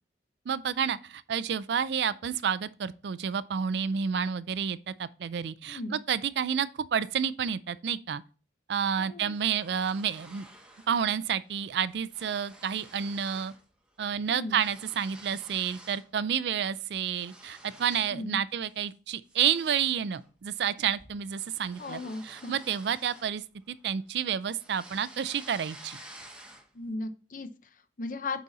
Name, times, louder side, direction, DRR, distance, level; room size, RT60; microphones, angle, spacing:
voice 1, 0.5-8.2 8.7-10.5 10.9-13.5 14.0-26.0, right 8 dB, 70° right, 0.4 m, -30 dB
voice 2, 5.7-6.0 9.0-9.4 14.3-14.6 18.1-18.4 21.8-22.5 26.7-28.4, left 2 dB, 50° left, 0.7 m, -37 dB
sound 1, 9.3-11.0 11.3-11.6 11.8-13.6 13.9-16.1 16.5-18.2 18.6-18.8 19.3-23.8 24.2-26.9, right 1 dB, 5° right, 1.0 m, -51 dB
8.4 x 4.0 x 4.0 m
head